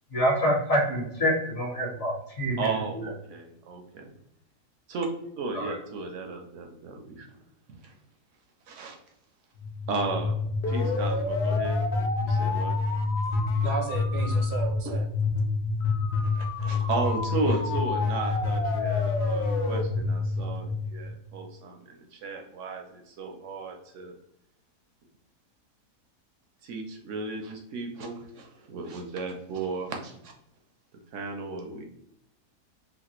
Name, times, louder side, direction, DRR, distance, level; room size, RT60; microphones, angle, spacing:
voice 1, 0.1-2.7 5.5-5.7, equal, 50° left, -2 dB, 1.2 m, -26 dB
voice 2, 2.6-4.1 4.9-5.1 5.4-7.3 7.7-8.0 8.7-9.0 9.9-10.4 10.7-12.7 16.2-24.1 26.6-30.3 31.1-31.8, right 3 dB, 70° right, 2 dB, 0.7 m, -34 dB
sound 1, 9.6-21.4, left 3 dB, 80° left, 0.6 m, -27 dB
voice 3, 13.6-15.1, right 5 dB, 85° right, 3 dB, 1.2 m, -33 dB
3.2 x 2.4 x 2.9 m, 0.75 s
omnidirectional pair, 1.7 m